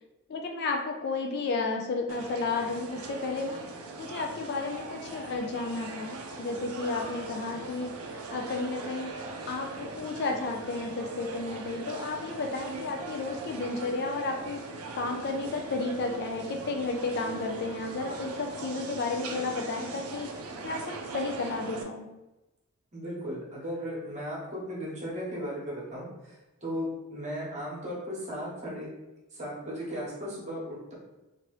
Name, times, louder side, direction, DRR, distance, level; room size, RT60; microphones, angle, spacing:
voice 1, 0.3-3.6 4.0-9.1 9.5-14.6 14.9-20.3 20.6-22.1, left 3 dB, 50° left, 3 dB, 0.3 m, -32 dB
sound 1, 2.1-21.8, right 3 dB, 80° right, 0.4 m, -40 dB
voice 2, 22.9-26.4 26.6-28.9 29.3-30.9, equal, 30° right, -4 dB, 1.0 m, -36 dB
2.9 x 2.5 x 3.0 m, 1.0 s
head